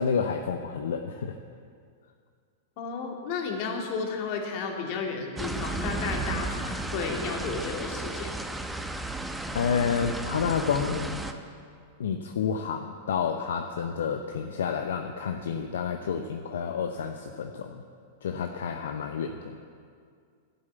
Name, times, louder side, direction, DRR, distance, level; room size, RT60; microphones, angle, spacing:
voice 1, 0.0-1.4 9.5-11.2 12.0-17.8 18.2-19.6, left 6 dB, 75° left, 5 dB, 0.7 m, -29 dB
voice 2, 2.8-8.4, left 5 dB, 55° left, 1 dB, 2.4 m, -33 dB
sound 1, 5.4-11.3, right 2 dB, 5° right, 0.9 m, -34 dB
12.0 x 7.9 x 8.3 m, 2.2 s
hypercardioid pair, 105°, 0 cm